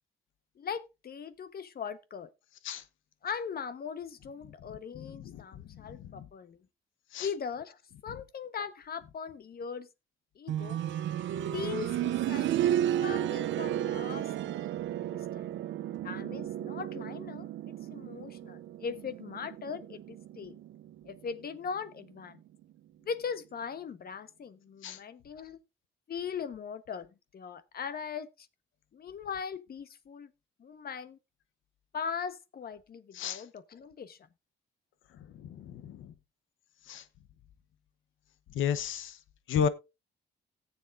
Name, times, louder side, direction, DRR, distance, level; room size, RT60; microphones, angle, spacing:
voice 1, 0.6-2.3 3.2-6.6 7.2-9.9 10.3-10.8 11.5-15.5 16.0-20.6 21.0-22.4 23.0-25.6 26.1-28.5 28.9-30.3 30.6-31.2 31.9-34.2, left 6 dB, 50° left, 1.2 m, -40 dB
sound 1, 10.5-21.2 22.6-22.7, right 11 dB, 70° right, 0.6 m, -33 dB
voice 2, 35.5-36.0 36.9-37.0 38.5-39.1 39.5-39.7, left 8 dB, 80° left, 1.0 m, -31 dB
17.5 x 7.3 x 2.6 m
cardioid pair, 90°, 20 cm